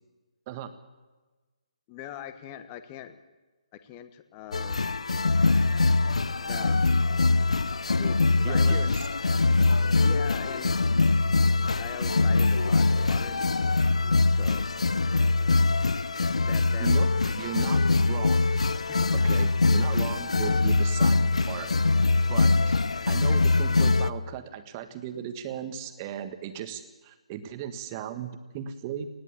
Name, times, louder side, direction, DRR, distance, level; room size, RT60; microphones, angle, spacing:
voice 1, 1.9-3.2 3.7-4.9 6.4-6.8 7.9-8.9 10.0-10.9 11.8-13.5 14.2-14.7 16.5-16.9 18.9-19.2, left 11 dB, 20° left, 10 dB, 1.3 m, -41 dB
sound 1, 4.5-24.1, left 3 dB, 65° left, 0.7 m, -23 dB
voice 2, 8.4-9.0 16.8-18.8 19.1-21.7 22.2-22.7 23.1-29.1, right 9 dB, 25° right, 9 dB, 1.5 m, -37 dB
20.0 x 16.0 x 8.5 m, 1.3 s
figure-of-eight pair, 140°, 4 cm